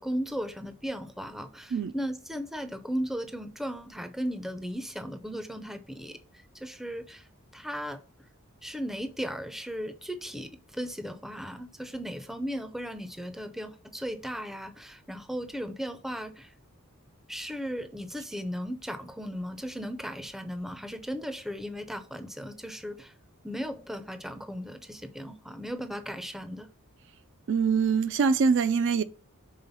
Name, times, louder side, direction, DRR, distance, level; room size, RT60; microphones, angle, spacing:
voice 1, 0.0-6.2 6.5-8.0 8.6-16.5 17.3-23.1 23.4-26.7, equal, ahead, 0.5 m, -36 dB
voice 2, 27.5-29.0, right 5 dB, 55° right, 0.4 m, -24 dB
5.6 x 3.7 x 5.4 m
head